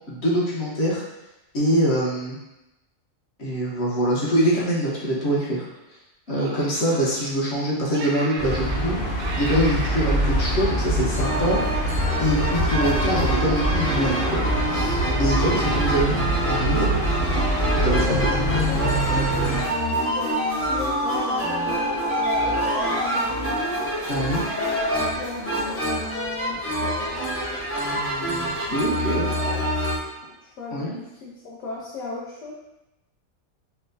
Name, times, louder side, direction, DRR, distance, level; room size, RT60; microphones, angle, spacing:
voice 1, 0.1-1.0 1.5-2.4 3.4-5.7 6.3-9.0 9.4-11.8 12.2-14.4 14.7-16.2 16.5-17.0 17.8-18.2 24.1-24.4 27.9-29.3 30.7-31.0, equal, 55° left, -6 dB, 1.1 m, -24 dB
Laughter, 4.7-6.0 6.3-7.6 7.9-8.9 9.2-11.8, right 2 dB, 65° right, 0.6 m, -38 dB
sound 1, 8.4-19.6, right 1 dB, 40° left, 0.8 m, -24 dB
sound 2, 11.1-30.0, right 1 dB, 15° left, 0.5 m, -26 dB
voice 2, 17.8-23.6 24.5-27.2 28.7-29.8 30.4-32.5, left 3 dB, 70° left, -4 dB, 0.9 m, -34 dB
4.4 x 2.1 x 2.6 m, 0.94 s
omnidirectional pair, 1.4 m